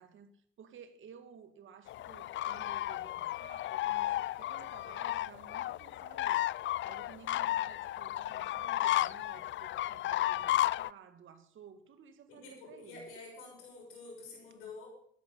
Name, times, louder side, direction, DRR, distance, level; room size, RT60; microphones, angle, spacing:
voice 1, 0.0-6.5 6.9-13.1, right 7 dB, 70° right, 2.1 m, -55 dB
sound 1, 1.9-10.9, left 14 dB, 65° left, 0.4 m, -33 dB
voice 2, 12.3-14.9, left 3 dB, 90° left, 6.4 m, -48 dB
14.0 x 11.5 x 5.7 m
supercardioid pair, 55°, 21 cm